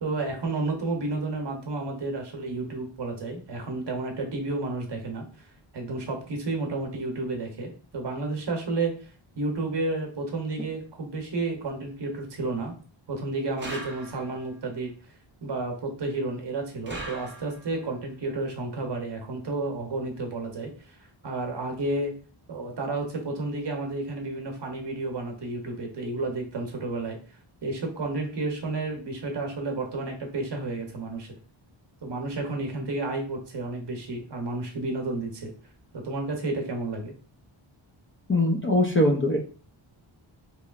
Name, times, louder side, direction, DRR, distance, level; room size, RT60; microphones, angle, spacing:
voice 1, 0.0-5.5 5.7-9.1 9.4-12.7 13.1-14.9 15.4-21.0 21.2-22.1 22.5-27.2 27.6-31.3 32.0-35.5 35.9-37.1, right 2 dB, 55° right, 3 dB, 0.9 m, -31 dB
sound 1, 13.6-14.5 16.9-17.8, right 2 dB, 25° right, 0.7 m, -39 dB
voice 2, 38.3-39.4, left 1 dB, 25° left, 1 dB, 0.4 m, -21 dB
3.0 x 3.0 x 2.4 m, 0.39 s
wide cardioid pair, 125°, 50 cm